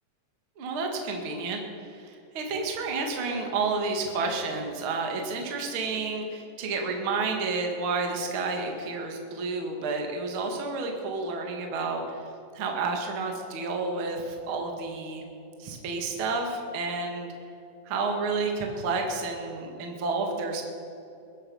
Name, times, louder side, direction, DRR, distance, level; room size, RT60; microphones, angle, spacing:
voice 1, 0.6-12.2 12.5-15.2 15.6-17.3 17.8-20.6, right 3 dB, 60° right, 2 dB, 1.3 m, -30 dB
22.0 x 11.5 x 5.5 m, 2.7 s
omnidirectional pair, 5.7 m